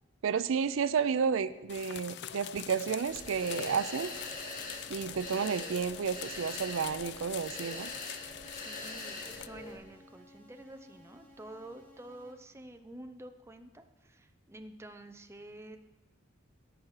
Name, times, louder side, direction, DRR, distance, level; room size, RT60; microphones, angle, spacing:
voice 1, 0.2-4.1 4.9-7.9, right 6 dB, 80° right, 14 dB, 0.4 m, -31 dB
sound 1, 1.7-9.5, left 11 dB, 60° left, 0.4 m, -44 dB
sound 2, 3.1-9.8, left 2 dB, 45° left, 1.7 m, -43 dB
sound 3, 3.3-12.3, left 1 dB, 10° left, 3.2 m, -58 dB
voice 2, 8.5-15.8, right 1 dB, 15° right, 6 dB, 0.6 m, -49 dB
17.0 x 5.9 x 4.8 m, 1.2 s
head